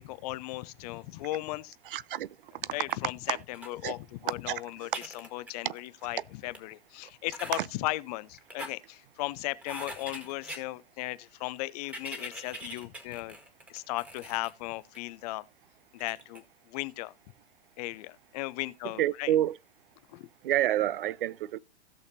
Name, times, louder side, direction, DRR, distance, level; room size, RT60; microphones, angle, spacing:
voice 1, 0.0-1.8 2.7-13.4 13.7-15.4 15.9-17.1 17.8-19.3 20.1-20.3, left 19 dB, 40° left, 0.6 m, -36 dB
voice 2, 1.9-2.3 2.6-2.7 3.3-3.4 3.8-3.9 4.5-4.6 5.6-5.7 7.5-7.7 19.0-19.6 20.4-21.6, right 12 dB, 60° right, 0.5 m, -28 dB
sound 1, 2.8-3.0 3.5-3.7 4.3-4.4 4.7-6.0 6.5-6.6 7.3-7.6 8.3-8.7 9.6-10.6 11.8-14.5 14.9-15.0 16.0-16.4, equal, 5° right, 1.7 m, -43 dB
16.5 x 6.5 x 2.7 m
figure-of-eight pair, 105°, 32 cm